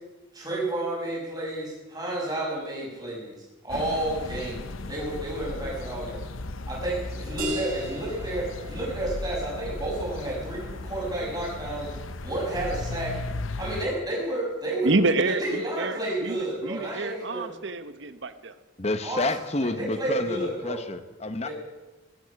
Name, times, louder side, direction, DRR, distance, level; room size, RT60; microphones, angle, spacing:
voice 1, 0.3-3.4 3.6-6.2 6.7-11.9 12.2-13.1 13.6-14.9 15.3-17.5 19.0-19.3 19.8-20.8 21.4-21.5, right 1 dB, 20° right, 6.1 m, -31 dB
sound 1, 3.7-13.9, left 2 dB, 80° left, 0.8 m, -36 dB
sound 2, 7.4-12.7, right 1 dB, 45° right, 5.8 m, -39 dB
voice 2, 14.8-18.5, right 2 dB, 60° right, 1.0 m, -28 dB
voice 3, 18.8-21.5, left 2 dB, 30° left, 0.9 m, -29 dB
18.0 x 13.0 x 5.9 m
head